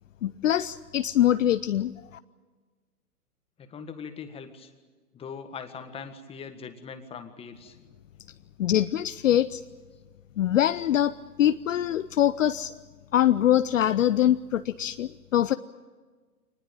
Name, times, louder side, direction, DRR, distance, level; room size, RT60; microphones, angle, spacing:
voice 1, 0.2-2.2 8.6-9.6 10.4-12.7 13.1-15.5, left 11 dB, 55° left, 13 dB, 0.7 m, -24 dB
voice 2, 3.6-4.7 5.1-7.8, left 6 dB, 10° left, 8 dB, 1.6 m, -41 dB
25.0 x 20.0 x 8.9 m, 1.4 s
hypercardioid pair, 130°, 47 cm